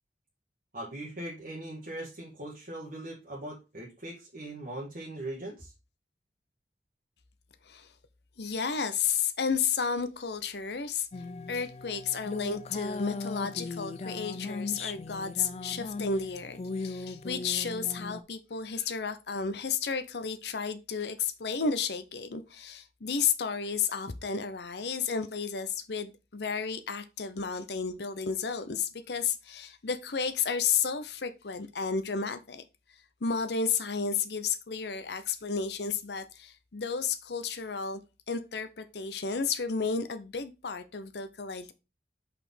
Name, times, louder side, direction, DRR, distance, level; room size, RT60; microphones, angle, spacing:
voice 1, 0.7-5.7, right 1 dB, 50° right, 1.6 m, -40 dB
voice 2, 8.4-11.1 11.5-32.6 33.2-38.0 38.3-41.7, left 6 dB, 70° left, 0.7 m, -32 dB
sound 1, 11.1-18.2, left 3 dB, 35° left, 0.4 m, -38 dB
5.5 x 4.3 x 5.4 m
head